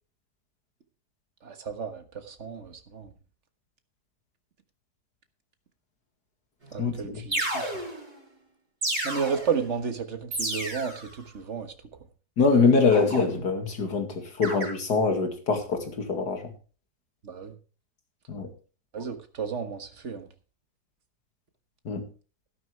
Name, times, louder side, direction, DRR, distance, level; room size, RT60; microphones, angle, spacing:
voice 1, 1.4-3.1 6.7-7.7 9.0-11.7 17.2-17.5 18.9-20.3, right 6 dB, 45° right, 8 dB, 1.7 m, -32 dB
sound 1, 6.6-6.7 7.3-8.1 8.8-9.6 10.3-11.1 12.9-13.7 14.4-14.7, right 1 dB, 65° right, 6.4 m, -31 dB
voice 2, 6.8-7.2 12.4-16.4 18.3-18.5 21.9-22.0, left 4 dB, 75° left, 5 dB, 2.8 m, -24 dB
13.0 x 11.5 x 3.4 m, 0.36 s
omnidirectional pair, 1.8 m